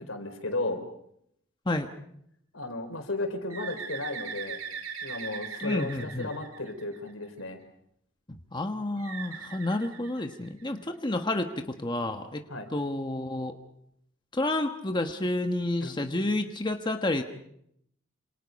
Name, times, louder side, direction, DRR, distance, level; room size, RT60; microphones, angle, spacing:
voice 1, 0.1-0.8 2.5-4.6 5.0-7.6 12.5-12.7 15.8-15.9, left 2 dB, 80° left, 7 dB, 4.3 m, -34 dB
Bird, 3.5-7.2 9.0-10.8, right 6 dB, 90° right, 3.1 m, -40 dB
voice 2, 5.6-6.3 8.5-12.4 12.7-13.5 14.3-17.2, left 2 dB, 20° left, 5 dB, 1.2 m, -30 dB
27.5 x 27.0 x 5.3 m, 0.73 s
head